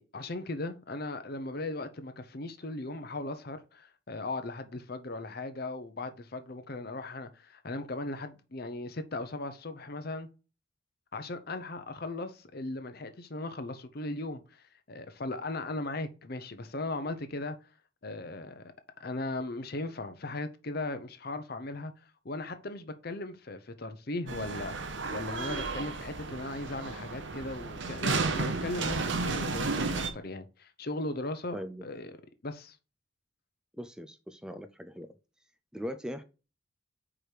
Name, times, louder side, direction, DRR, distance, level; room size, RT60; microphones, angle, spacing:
voice 1, 0.0-10.3 11.1-17.6 18.0-18.7 19.0-21.9 22.2-24.8 25.1-32.2 32.4-32.8, left 2 dB, 45° left, 0.7 m, -38 dB
sound 1, 24.3-30.1, right 3 dB, 60° right, 0.9 m, -33 dB
voice 2, 31.5-31.8 33.8-35.1 35.7-36.2, equal, 5° right, 0.4 m, -40 dB
4.9 x 4.5 x 4.9 m
head